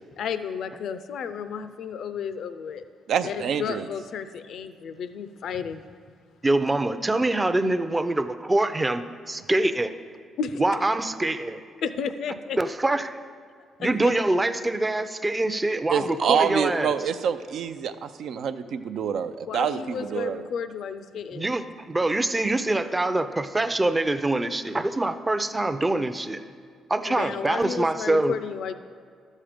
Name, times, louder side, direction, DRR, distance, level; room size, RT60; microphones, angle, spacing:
voice 1, 0.2-2.8 3.2-5.8 10.4-10.6 11.8-12.6 13.8-14.1 19.5-21.5 27.1-28.7, left 6 dB, 70° left, 12 dB, 0.5 m, -32 dB
voice 2, 3.1-3.9 15.9-20.4, right 7 dB, 70° right, 10 dB, 0.5 m, -27 dB
voice 3, 6.4-9.9 10.6-11.6 12.6-13.1 13.8-16.9 21.3-26.4 26.9-28.3, right 2 dB, 15° right, 10 dB, 0.5 m, -24 dB
12.0 x 7.4 x 5.1 m, 2.1 s
cardioid pair, 90°, 0 cm